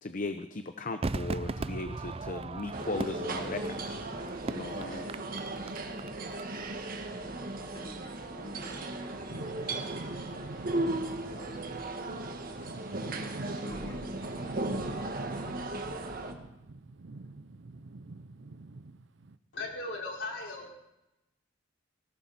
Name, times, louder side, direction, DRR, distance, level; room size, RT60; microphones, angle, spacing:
voice 1, 0.0-4.0 4.5-5.1, left 3 dB, 45° left, 9 dB, 0.8 m, -37 dB
Crowd / Fireworks, 1.0-6.4 6.7-6.8, right 3 dB, 30° right, 0.5 m, -38 dB
sound 1, 2.7-16.3, right 2 dB, 50° right, 1.8 m, -36 dB
voice 2, 7.2-12.0 12.3-12.4 13.0-13.3 13.5-16.1, left 1 dB, 25° left, -1 dB, 3.7 m, -53 dB
sound 2, 9.3-19.4, right 3 dB, 75° right, 0.6 m, -45 dB
voice 3, 19.5-20.7, left 2 dB, 80° left, -2 dB, 5.0 m, -37 dB
20.0 x 17.0 x 4.3 m, 0.92 s
head